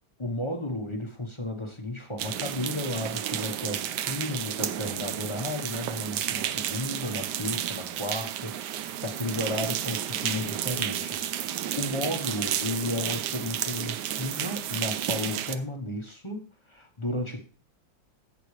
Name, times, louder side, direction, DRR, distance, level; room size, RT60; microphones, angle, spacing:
voice 1, 0.2-17.5, left 1 dB, 20° left, 3 dB, 1.0 m, -33 dB
sound 1, 2.2-15.6, right 11 dB, 70° right, 1.2 m, -32 dB
16.0 x 6.0 x 3.3 m, 0.37 s
omnidirectional pair, 2.1 m